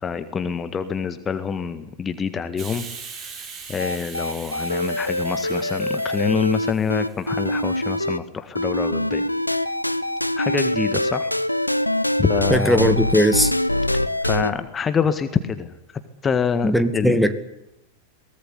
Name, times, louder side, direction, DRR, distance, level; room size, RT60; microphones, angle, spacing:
voice 1, 0.0-2.8 3.3-9.3 10.4-11.3 12.2-13.0 14.2-15.8 16.2-17.2, left 6 dB, 20° left, 11 dB, 1.8 m, -26 dB
Hiss, 2.6-7.9, right 5 dB, 35° right, 6.5 m, -41 dB
sound 1, 3.8-8.2 8.6-14.5, left 1 dB, 90° left, 1.0 m, -24 dB
voice 2, 12.5-13.5 16.6-17.3, equal, ahead, 8 dB, 2.1 m, -18 dB
23.0 x 19.0 x 9.8 m, 0.87 s
figure-of-eight pair, 90°, 0 cm